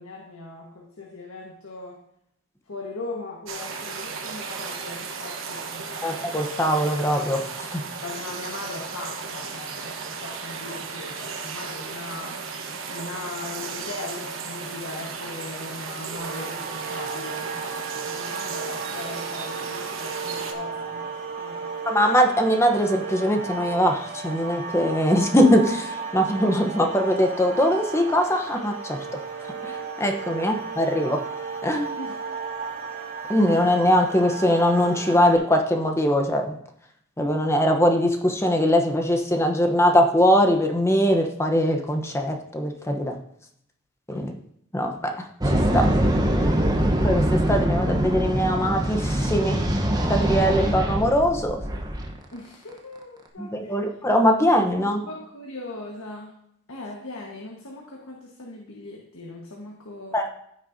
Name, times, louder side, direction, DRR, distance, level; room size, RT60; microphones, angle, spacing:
voice 1, 0.0-2.0 2.7-6.1 8.0-12.4 12.9-21.7 30.4-30.5 32.0-32.2 44.1-44.4 52.3-53.8 55.1-56.3 56.7-60.2, left 2 dB, 85° left, -1 dB, 1.5 m, -39 dB
sound 1, 3.5-20.5, right 5 dB, 65° right, 1.2 m, -35 dB
voice 2, 6.0-7.8 21.9-29.7 30.0-31.2 31.6-31.9 33.3-36.6 37.2-43.2 44.1-44.3 44.7-45.9 47.0-49.7 50.1-51.6 53.4-55.0 60.1-60.3, equal, 15° left, 4 dB, 1.0 m, -22 dB
sound 2, 16.2-35.4, right 5 dB, 50° right, 3.3 m, -34 dB
sound 3, 45.4-52.1, right 1 dB, 20° right, 1.1 m, -23 dB
15.5 x 6.5 x 2.8 m, 0.72 s
head